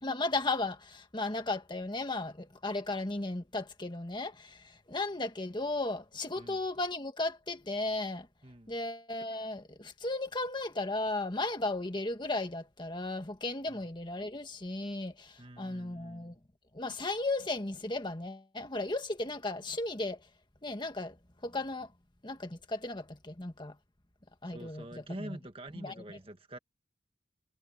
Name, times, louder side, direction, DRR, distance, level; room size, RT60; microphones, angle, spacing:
voice 1, 0.0-8.3 8.7-16.3 16.7-20.2 20.6-21.2 21.4-21.9 22.2-23.7 24.4-25.4 25.7-26.2, left 2 dB, 25° left, 1.8 m, -35 dB
voice 2, 15.4-16.4 24.5-26.6, right 1 dB, 30° right, 2.0 m, -46 dB
head